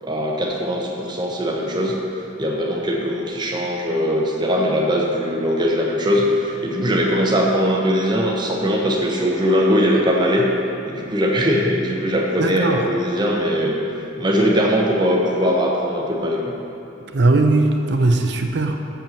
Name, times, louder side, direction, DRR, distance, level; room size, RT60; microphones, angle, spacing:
voice 1, 0.0-2.0 2.4-10.5 10.8-13.8 14.2-16.5, equal, 25° right, -1 dB, 0.9 m, -20 dB
voice 2, 12.4-12.8 17.0-18.8, right 2 dB, 60° right, 5 dB, 0.7 m, -18 dB
7.4 x 5.3 x 6.9 m, 3.0 s
head